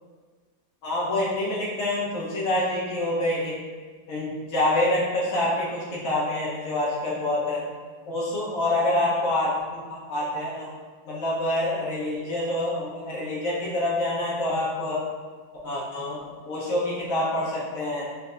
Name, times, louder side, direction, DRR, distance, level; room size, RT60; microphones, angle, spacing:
voice 1, 0.8-3.6 4.1-7.6 8.1-10.7 11.0-15.0 15.6-16.2 16.4-18.1, left 1 dB, 50° left, -6 dB, 1.1 m, -26 dB
5.3 x 2.7 x 2.4 m, 1.5 s
omnidirectional pair, 2.2 m